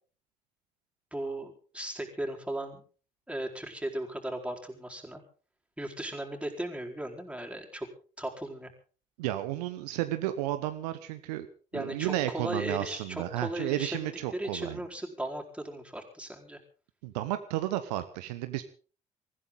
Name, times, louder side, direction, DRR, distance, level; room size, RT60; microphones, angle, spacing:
voice 1, 1.1-2.8 3.3-5.2 5.8-7.9 8.2-8.7 11.7-16.6, right 1 dB, 5° right, 1 dB, 4.4 m, -37 dB
voice 2, 9.2-11.5 11.7-14.8 17.0-18.6, right 14 dB, 70° right, 10 dB, 0.9 m, -32 dB
24.0 x 15.0 x 3.9 m, 0.39 s
figure-of-eight pair, 45°, 21 cm